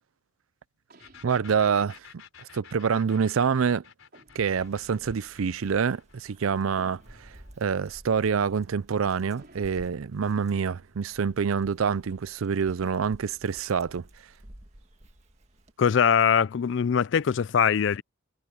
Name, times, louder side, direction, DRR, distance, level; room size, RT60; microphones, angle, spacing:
sound 1, 0.9-2.2 4.1-5.2 6.8-7.8 9.4-12.1, right 1 dB, 50° right, 4.7 m, -57 dB
sound 2, 1.0-8.5, left 7 dB, 90° left, 4.7 m, -52 dB
voice 1, 1.2-2.0 2.5-3.8 4.3-7.0 7.6-14.0, right 6 dB, 90° right, 0.5 m, -26 dB
Dog, 4.4-15.7, right 1 dB, 35° right, 1.8 m, -53 dB
voice 2, 15.8-18.0, left 7 dB, 60° left, 0.4 m, -22 dB
head